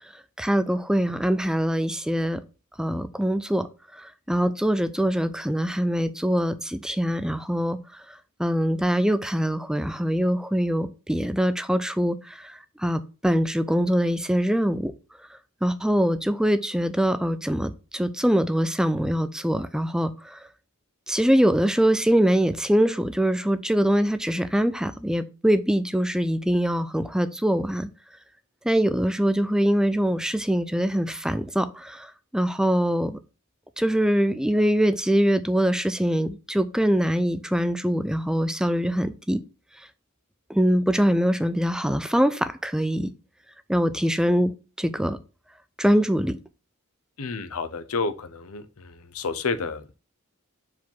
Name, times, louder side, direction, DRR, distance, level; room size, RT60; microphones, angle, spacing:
voice 1, 0.4-2.4 2.8-3.7 4.0-7.8 8.4-14.9 15.6-20.4 21.1-27.9 28.7-33.2 33.8-39.4 40.5-43.1 43.7-45.2 45.8-46.4, equal, 5° right, 0.4 m, -23 dB
voice 2, 47.2-50.0, left 4 dB, 85° left, 0.7 m, -30 dB
5.5 x 4.8 x 4.5 m
head